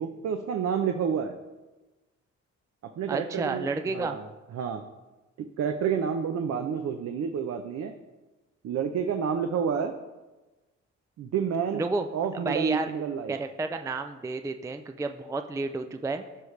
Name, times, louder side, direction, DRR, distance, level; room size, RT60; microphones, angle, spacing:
voice 1, 0.0-1.4 3.0-4.3 4.5-4.8 5.6-7.9 8.6-9.9 11.2-11.8 12.1-13.4, right 7 dB, 60° right, 5 dB, 0.7 m, -29 dB
voice 2, 3.1-4.2 11.7-12.1 12.4-12.9 13.3-16.2, right 3 dB, 10° right, 7 dB, 0.4 m, -31 dB
14.5 x 5.1 x 3.2 m, 1.2 s
cardioid pair, 90°, 30 cm